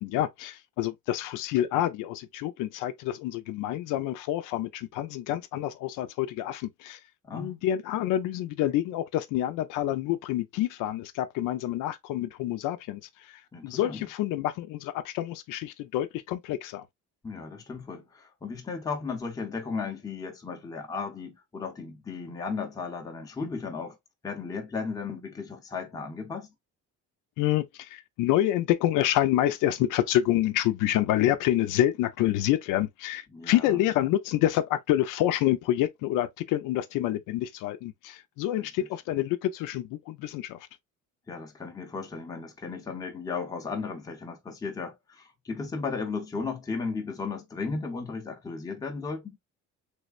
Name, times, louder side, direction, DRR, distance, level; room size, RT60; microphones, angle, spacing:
voice 1, 0.0-7.0 7.3-16.9 27.4-40.7, left 13 dB, 90° left, 0.6 m, -27 dB
voice 2, 7.2-7.6 13.5-14.0 17.2-24.0 24.2-26.5 33.3-33.7 38.6-38.7 41.3-49.4, left 4 dB, 10° left, 0.6 m, -35 dB
3.4 x 3.2 x 2.3 m
cardioid pair, 165°, 31 cm